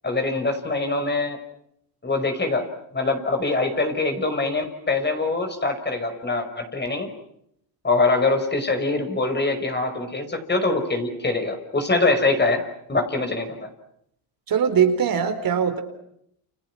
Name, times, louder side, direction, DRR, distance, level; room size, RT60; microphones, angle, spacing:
voice 1, 0.0-1.4 2.0-7.1 7.8-12.6 12.9-13.7, left 3 dB, 25° left, 6 dB, 5.6 m, -23 dB
voice 2, 14.5-15.8, right 7 dB, 50° right, 7 dB, 4.3 m, -21 dB
30.0 x 29.5 x 6.1 m, 0.74 s
cardioid pair, 105°, 44 cm